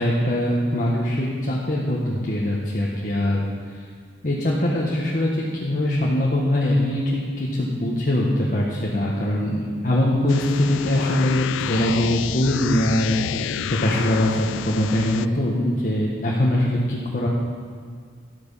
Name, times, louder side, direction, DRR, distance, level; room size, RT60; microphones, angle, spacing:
voice 1, 0.0-3.4 4.2-17.3, left 1 dB, 45° left, -4 dB, 1.3 m, -22 dB
sound 1, 10.3-15.3, left 9 dB, 85° left, 0.3 m, -30 dB
12.0 x 8.6 x 5.6 m, 2.1 s
head